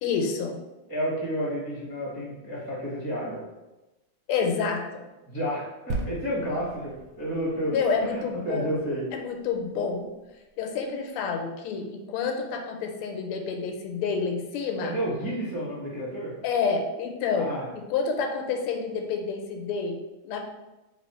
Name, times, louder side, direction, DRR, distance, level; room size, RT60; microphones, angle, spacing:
voice 1, 0.0-0.6 4.3-5.0 7.7-8.7 9.1-10.1 10.6-15.0 16.4-20.4, left 5 dB, 85° left, 3 dB, 1.5 m, -29 dB
voice 2, 0.9-3.4 5.3-9.1 14.8-16.3 17.4-17.7, equal, 15° left, -6 dB, 0.8 m, -31 dB
sound 1, 5.9-9.5 10.1-10.2, right 2 dB, 75° right, 1.1 m, -37 dB
3.3 x 2.9 x 4.2 m, 1.1 s
omnidirectional pair, 2.4 m